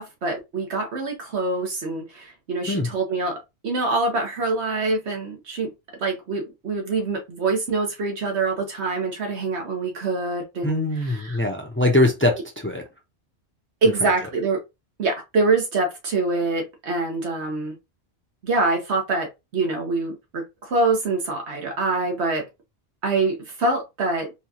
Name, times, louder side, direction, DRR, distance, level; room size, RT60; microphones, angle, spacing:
voice 1, 0.0-5.7 6.0-11.4 13.8-14.6 15.0-17.7 18.4-22.5 23.0-24.3, right 3 dB, 80° right, 1.4 m, -25 dB
voice 2, 10.6-12.8, left 1 dB, 15° left, 0.6 m, -22 dB
4.4 x 2.4 x 2.8 m
omnidirectional pair, 1.1 m